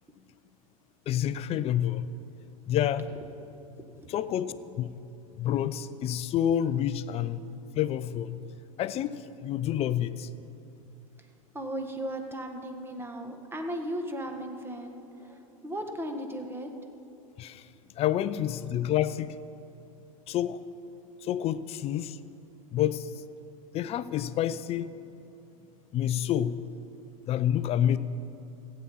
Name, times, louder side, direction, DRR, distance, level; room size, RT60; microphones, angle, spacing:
voice 1, 1.1-2.1 2.7-3.1 4.1-5.0 5.4-8.4 8.8-10.5 17.4-17.7 18.0-19.3 20.3-20.6 21.2-22.2 22.7-23.1 23.7-24.9 25.9-26.6 27.3-28.0, left 11 dB, 35° left, 0.5 m, -28 dB
voice 2, 3.8-4.1 4.5-4.6 11.5-16.7, right 1 dB, 15° right, 1.6 m, -36 dB
15.5 x 8.7 x 5.6 m
hypercardioid pair, 90°, 18 cm